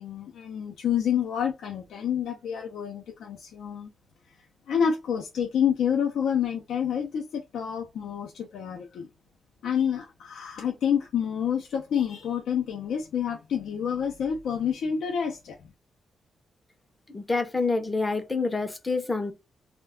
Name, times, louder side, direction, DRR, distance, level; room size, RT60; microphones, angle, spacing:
voice 1, 0.0-3.9 4.7-9.1 9.6-15.6, left 8 dB, 90° left, 0.5 m, -28 dB
voice 2, 17.1-19.3, left 3 dB, 15° left, 0.5 m, -27 dB
2.3 x 2.1 x 3.5 m
wide cardioid pair, 160°, 0 cm